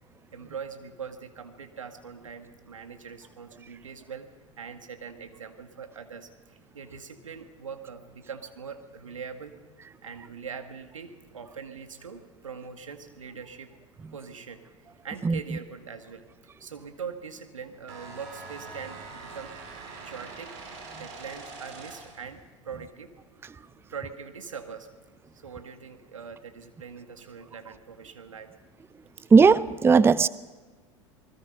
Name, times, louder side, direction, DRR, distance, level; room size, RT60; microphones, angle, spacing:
voice 1, 0.3-4.3 4.6-9.5 10.0-13.8 14.1-16.3 16.6-19.6 20.0-20.5 20.9-23.1 23.9-24.9 25.3-28.5, right 6 dB, 85° right, 8 dB, 1.9 m, -42 dB
sound 1, 17.9-22.3, right 4 dB, 65° right, 5.7 m, -43 dB
voice 2, 29.3-30.3, right 5 dB, 15° right, 18 dB, 0.5 m, -17 dB
27.5 x 20.5 x 5.4 m, 1.4 s
hypercardioid pair, 80°, 16 cm